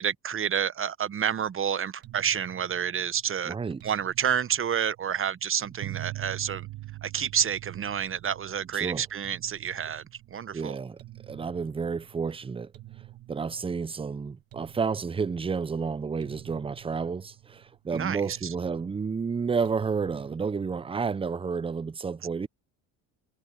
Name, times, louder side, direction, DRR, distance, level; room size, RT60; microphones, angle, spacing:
voice 1, 0.0-3.6 3.8-6.7 7.0-10.8 17.9-18.5, right 8 dB, 30° right, 0.9 m, -29 dB
sound 1, 2.0-21.3, right 16 dB, 55° right, 2.1 m, -51 dB
voice 2, 3.5-3.8 8.7-9.0 10.5-11.0 11.3-12.7 13.3-22.5, right 5 dB, 15° right, 0.4 m, -31 dB
sound 2, 5.8-10.9, right 17 dB, 75° right, 7.4 m, -42 dB
supercardioid pair, 75°, 41 cm